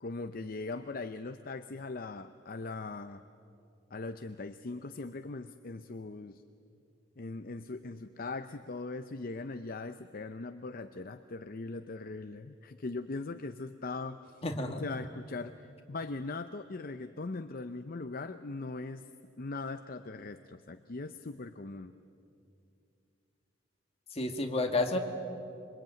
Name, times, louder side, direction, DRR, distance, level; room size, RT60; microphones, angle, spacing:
voice 1, 0.0-3.2 3.9-6.4 7.2-14.4 14.8-19.1 19.4-22.0, left 3 dB, 50° left, 9 dB, 0.7 m, -40 dB
voice 2, 14.4-14.8 24.1-25.0, left 2 dB, 35° left, 3 dB, 2.2 m, -30 dB
27.0 x 23.5 x 9.1 m, 2.6 s
head